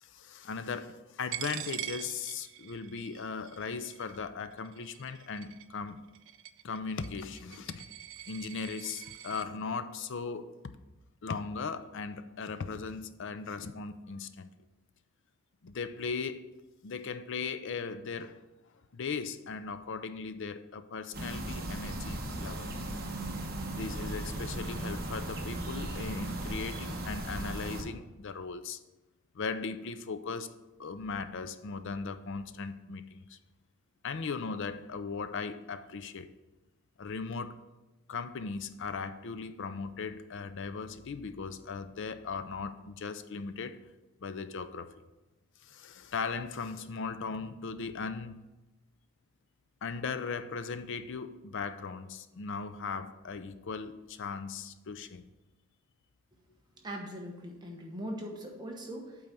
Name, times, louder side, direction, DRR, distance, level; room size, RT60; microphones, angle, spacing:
voice 1, 0.0-6.0 6.6-7.8 8.3-10.6 11.2-14.5 15.6-16.5 16.8-18.4 18.9-22.7 23.7-28.8 29.3-30.5 30.8-33.4 34.0-36.3 37.0-37.6 38.1-43.8 44.2-44.9 45.6-48.4 49.8-55.3, left 5 dB, 55° left, 0.5 m, -38 dB
Coin (dropping), 1.3-9.5, right 13 dB, 60° right, 0.4 m, -44 dB
sound 1, 21.1-27.8, right 1 dB, 45° right, 1.2 m, -37 dB
voice 2, 56.8-59.2, equal, 20° right, 1.0 m, -40 dB
8.6 x 4.0 x 6.0 m
head